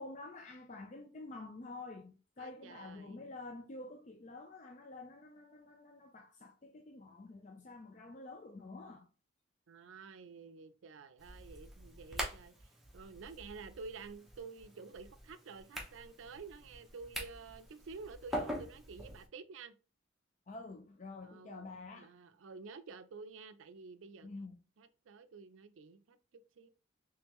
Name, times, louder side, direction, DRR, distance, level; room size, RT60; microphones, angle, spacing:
voice 1, 0.0-9.1 20.5-22.1 24.2-24.6, left 2 dB, 35° left, 0.4 m, -48 dB
voice 2, 2.4-3.3 9.7-12.5 12.9-19.7 21.2-24.3 24.8-26.2 26.6-26.7, right 4 dB, 80° right, 0.4 m, -50 dB
sound 1, 11.2-19.3, equal, ahead, 0.7 m, -45 dB
3.6 x 3.2 x 3.0 m
head